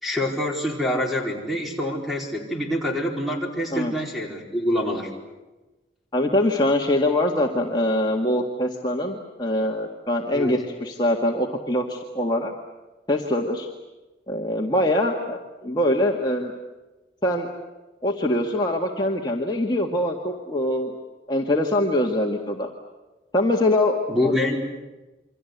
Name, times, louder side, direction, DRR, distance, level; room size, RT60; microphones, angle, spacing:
voice 1, 0.0-5.1 10.3-10.5 24.1-24.6, left 1 dB, ahead, 0 dB, 4.4 m, -26 dB
voice 2, 6.1-12.5 13.1-13.7 14.3-16.5 17.2-17.5 18.0-20.9 21.3-22.7 23.3-24.3, left 1 dB, 25° left, -1 dB, 1.9 m, -23 dB
28.0 x 25.0 x 8.2 m, 1.1 s
head